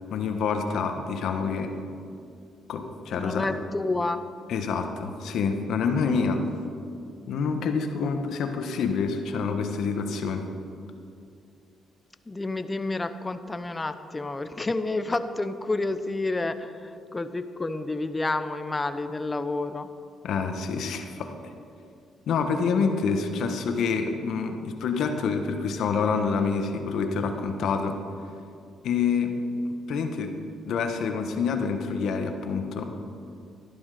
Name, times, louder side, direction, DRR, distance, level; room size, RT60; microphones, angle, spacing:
voice 1, 0.1-1.7 2.7-3.5 4.5-6.4 7.3-10.4 20.2-21.3 22.3-28.0 28.8-29.3 29.9-30.3 30.6-32.9, left 5 dB, 75° left, 5 dB, 1.3 m, -27 dB
voice 2, 3.1-4.2 12.3-19.9, left 2 dB, 20° left, 10 dB, 0.7 m, -29 dB
12.5 x 11.5 x 5.0 m, 2.4 s
cardioid pair, 90°, 0 cm